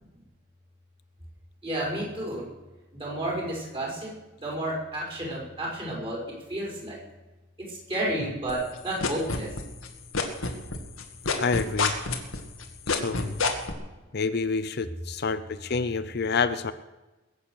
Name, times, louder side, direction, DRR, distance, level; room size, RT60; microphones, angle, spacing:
voice 1, 1.6-2.5 2.9-4.1 4.4-7.0 7.7-9.5, right 1 dB, 25° right, -4 dB, 5.6 m, -31 dB
sound 1, 8.5-9.9 10.1-13.7, left 4 dB, 90° left, 2.1 m, -26 dB
voice 2, 11.4-11.9 12.9-13.4 14.1-16.7, left 4 dB, 50° left, 12 dB, 0.6 m, -28 dB
21.5 x 8.5 x 6.6 m, 1.1 s
head